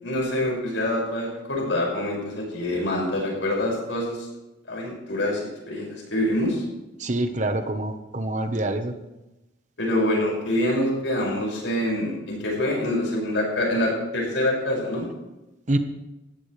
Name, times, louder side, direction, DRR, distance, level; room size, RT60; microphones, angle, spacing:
voice 1, 0.0-4.3 4.7-5.4 5.7-6.6 9.8-15.1, left 1 dB, 70° left, -2 dB, 6.2 m, -25 dB
voice 2, 7.0-8.9 15.7-15.8, right 1 dB, 40° right, 7 dB, 1.2 m, -26 dB
19.0 x 15.0 x 3.4 m, 0.98 s
head